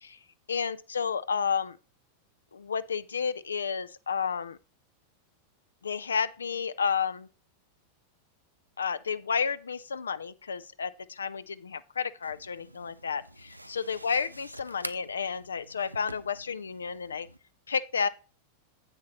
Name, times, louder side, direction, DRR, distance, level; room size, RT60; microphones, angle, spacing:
voice 1, 0.5-1.8 2.5-4.6 5.8-7.3 8.8-17.3 17.7-18.1, left 6 dB, 70° left, 0.4 m, -31 dB
sound 1, 12.2-17.4, right 1 dB, 85° right, 0.4 m, -46 dB
9.7 x 8.3 x 3.1 m
figure-of-eight pair, 90°, 0 cm